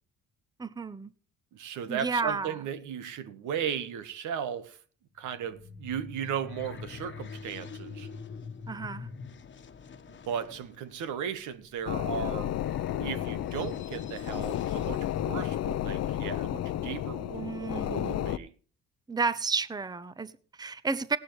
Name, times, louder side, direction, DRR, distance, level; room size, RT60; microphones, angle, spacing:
voice 1, 0.6-1.1 1.9-2.6 8.7-9.1 17.3-18.4 19.1-21.2, right 4 dB, 15° right, 0.8 m, -32 dB
voice 2, 1.5-4.8 5.2-8.1 10.3-12.5 13.0-18.5, right 8 dB, 80° right, 1.5 m, -36 dB
sound 1, 5.2-15.7, left 5 dB, 40° left, 1.3 m, -46 dB
sound 2, 11.9-18.4, left 12 dB, 60° left, 0.7 m, -32 dB
17.5 x 11.5 x 3.2 m
cardioid pair, 85°, 30 cm